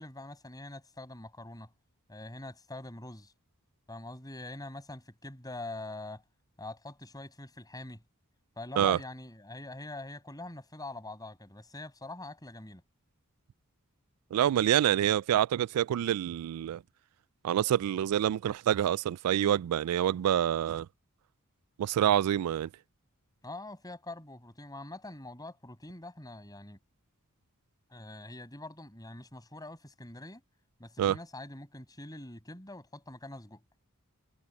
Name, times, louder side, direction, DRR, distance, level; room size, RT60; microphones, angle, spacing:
voice 1, 0.0-1.7 2.1-3.3 3.9-6.2 6.6-8.0 8.6-12.8 23.4-26.8 27.9-30.4 30.8-33.6, left 2 dB, 15° left, 7.7 m, -44 dB
voice 2, 14.3-16.8 17.4-20.9 21.8-22.7 31.0-31.2, right 10 dB, 85° right, 0.3 m, -27 dB
head